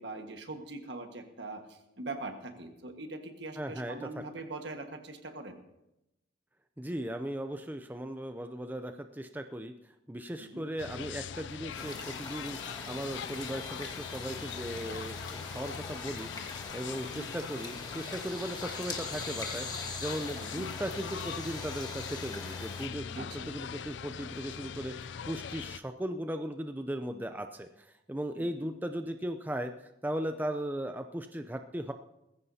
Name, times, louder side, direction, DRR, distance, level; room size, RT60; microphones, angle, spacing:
voice 1, 0.0-5.6 10.4-10.7 17.0-17.3 20.4-20.7 23.1-23.5 28.4-28.7, right 2 dB, 65° right, 5 dB, 1.6 m, -42 dB
voice 2, 3.6-4.2 6.8-9.7 10.1-31.9, right 1 dB, 10° right, 7 dB, 0.5 m, -37 dB
sound 1, 10.8-25.8, left 7 dB, 70° left, 0.4 m, -42 dB
sound 2, 11.7-22.9, left 3 dB, 20° left, 1.6 m, -42 dB
20.0 x 15.5 x 2.8 m, 0.89 s
head